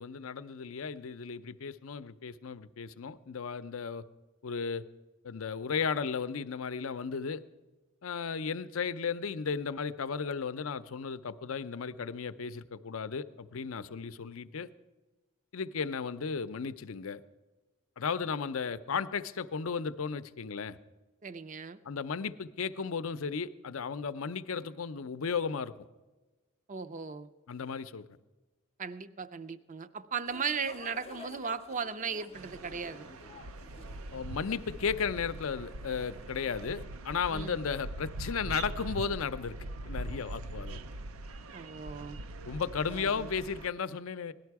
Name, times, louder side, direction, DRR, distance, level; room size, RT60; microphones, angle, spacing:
voice 1, 0.0-4.0 4.4-4.8 5.2-7.4 8.0-14.7 15.5-17.2 18.0-20.8 21.8-25.7 27.5-28.0 34.1-39.6 39.9-40.9 42.5-44.3, left 6 dB, 80° left, 13 dB, 0.6 m, -35 dB
voice 2, 21.2-21.8 26.7-27.3 28.8-33.1 37.3-37.6 41.5-42.2 42.9-43.3, right 6 dB, 35° right, 12 dB, 0.5 m, -37 dB
sound 1, 30.2-36.8, left 4 dB, 30° left, 0.4 m, -53 dB
sound 2, 32.3-43.7, right 2 dB, 85° right, 0.5 m, -42 dB
17.5 x 12.0 x 4.7 m, 1.2 s
head